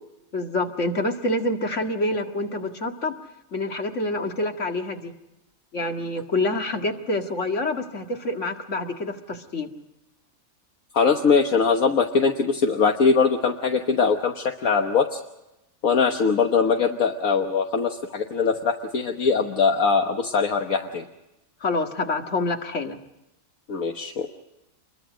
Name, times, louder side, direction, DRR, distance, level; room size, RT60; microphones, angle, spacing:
voice 1, 0.3-3.1 3.5-5.1 5.7-9.7 21.6-23.0, left 2 dB, 55° left, 4 dB, 2.3 m, -27 dB
voice 2, 10.9-15.2 15.8-21.0 23.7-24.3, left 5 dB, 70° left, 3 dB, 1.7 m, -21 dB
27.5 x 22.5 x 5.1 m, 0.92 s
omnidirectional pair, 1.5 m